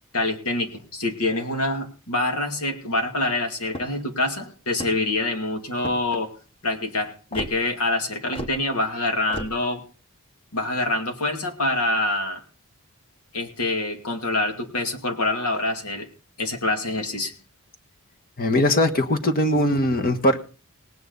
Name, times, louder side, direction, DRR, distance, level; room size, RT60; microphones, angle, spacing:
voice 1, 0.1-6.3 6.6-9.8 10.5-12.4 13.3-16.1 16.4-17.3, left 2 dB, 85° left, 2.4 m, -26 dB
sound 1, 3.6-4.1 4.7-5.2 5.8-6.2 7.3-7.5 8.3-8.6 9.3-9.5, equal, 25° left, 1.2 m, -34 dB
voice 2, 18.4-20.4, left 1 dB, 45° left, 1.4 m, -20 dB
19.0 x 9.3 x 4.0 m
head